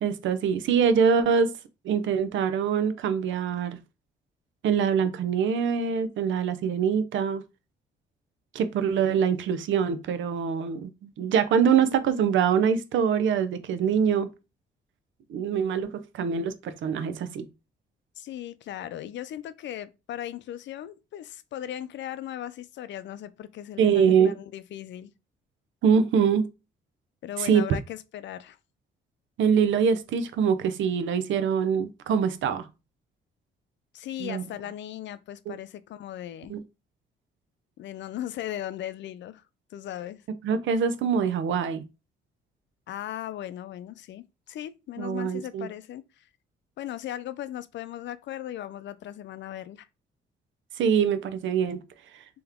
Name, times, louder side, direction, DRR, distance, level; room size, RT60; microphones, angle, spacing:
voice 1, 0.0-1.5 1.8-3.8 4.6-7.4 8.5-14.3 15.3-17.5 23.8-24.3 25.8-26.5 27.4-27.7 29.4-32.7 34.2-34.4 35.5-35.6 36.5-36.6 40.4-41.8 45.0-45.7 50.8-51.8, right 7 dB, 75° right, 0.7 m, -24 dB
voice 2, 18.2-25.1 27.2-28.6 33.9-36.5 37.8-39.4 39.7-40.2 42.9-46.3 46.8-49.9, left 12 dB, 65° left, 0.5 m, -37 dB
3.5 x 3.0 x 3.5 m
cardioid pair, 90°, 20 cm